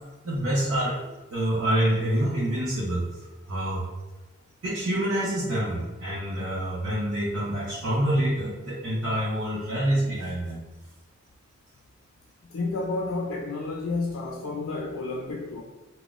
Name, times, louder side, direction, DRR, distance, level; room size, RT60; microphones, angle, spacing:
voice 1, 0.2-1.0 1.3-3.8 4.6-10.6, right 1 dB, 90° right, -6 dB, 0.6 m, -27 dB
voice 2, 12.5-15.6, left 3 dB, 85° left, -1 dB, 0.4 m, -30 dB
3.7 x 2.1 x 2.4 m, 1.2 s
head